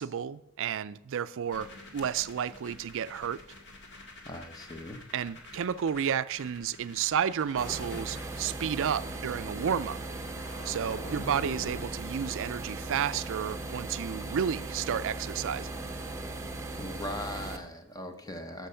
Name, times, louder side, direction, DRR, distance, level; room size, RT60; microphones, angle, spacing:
voice 1, 0.0-1.7 1.9-3.4 5.1-10.0 10.6-15.7, right 8 dB, 60° right, 0.4 m, -31 dB
sound 1, 1.5-11.8, left 2 dB, 55° left, 2.0 m, -47 dB
voice 2, 4.3-5.0 16.8-18.7, left 1 dB, 15° left, 0.8 m, -39 dB
sound 2, 7.6-17.6, right 2 dB, 15° right, 0.9 m, -38 dB
13.5 x 6.1 x 5.6 m
head